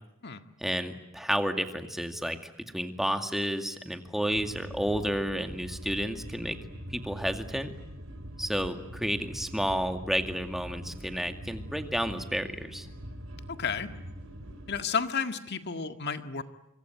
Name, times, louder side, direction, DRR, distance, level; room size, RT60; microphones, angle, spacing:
voice 1, 0.6-6.6 6.9-7.7 8.4-12.9, equal, ahead, 7 dB, 2.2 m, -31 dB
sound 1, 4.3-14.8, equal, 70° right, 4.4 m, -43 dB
voice 2, 13.5-13.9 14.7-16.4, left 6 dB, 55° left, 9 dB, 1.9 m, -31 dB
25.5 x 25.0 x 9.2 m, 0.87 s
head